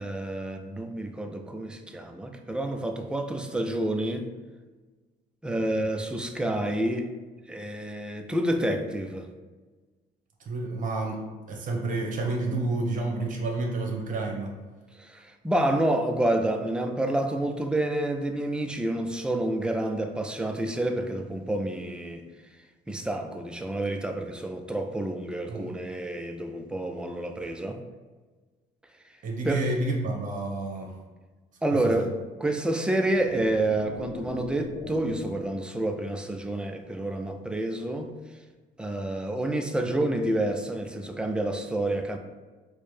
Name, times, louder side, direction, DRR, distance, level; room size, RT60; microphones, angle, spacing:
voice 1, 0.0-4.3 5.4-7.1 7.5-9.3 15.0-22.2 22.9-27.8 29.4-29.7 31.6-32.1 32.4-38.1 38.8-42.2, right 1 dB, 5° right, 0.3 m, -28 dB
voice 2, 10.4-11.2 11.5-14.5 25.5-25.7 29.2-30.9 31.8-32.1, right 2 dB, 50° right, 0.9 m, -29 dB
sound 1, 33.0-35.6, left 3 dB, 80° left, 0.6 m, -41 dB
4.5 x 2.1 x 3.2 m
cardioid pair, 110°, 17 cm